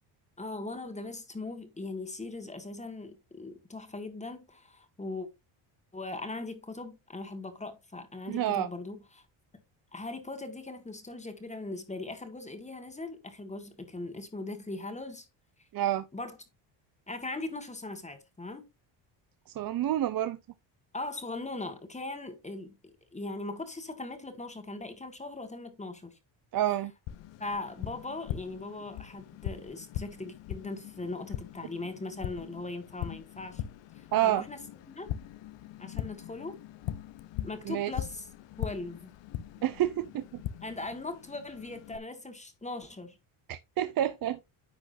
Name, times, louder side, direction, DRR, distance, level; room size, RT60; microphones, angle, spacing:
voice 1, 0.4-5.3 5.9-9.3 9.9-15.3 16.1-16.4 17.1-18.7 20.9-26.2 27.4-33.6 33.9-34.6 34.9-35.2 35.8-36.6 37.4-38.3 38.6-39.1 40.6-43.2, left 2 dB, 15° left, 1.6 m, -40 dB
voice 2, 8.3-8.7 15.7-16.0 19.6-20.4 26.5-26.9 34.1-34.4 37.7-37.9 39.6-40.2 43.5-44.4, right 12 dB, 45° right, 0.6 m, -28 dB
Tap, 27.1-42.0, left 12 dB, 60° left, 0.8 m, -41 dB
10.5 x 6.2 x 2.6 m
cardioid pair, 115°, 50 cm